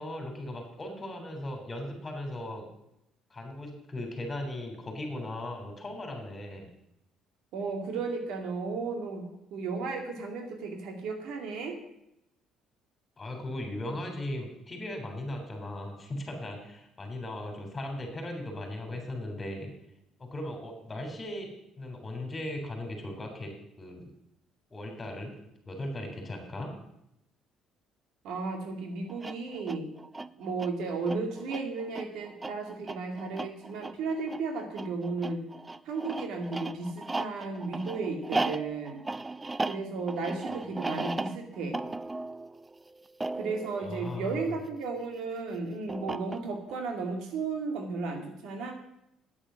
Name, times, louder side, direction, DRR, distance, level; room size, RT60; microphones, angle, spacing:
voice 1, 0.0-2.6 3.3-6.7 13.2-19.7 20.2-21.5 21.8-24.1 24.7-25.3 25.7-26.7 43.8-44.4, left 1 dB, 25° left, 3 dB, 3.5 m, -38 dB
voice 2, 7.5-9.2 9.5-11.8 28.2-29.9 30.4-35.4 35.8-39.0 39.7-41.8 43.4-48.7, right 4 dB, 75° right, 4 dB, 2.3 m, -34 dB
sound 1, 29.1-44.9 45.9-46.7, right 2 dB, 20° right, 0.4 m, -37 dB
8.9 x 8.9 x 6.3 m, 0.82 s
supercardioid pair, 85°, 0 cm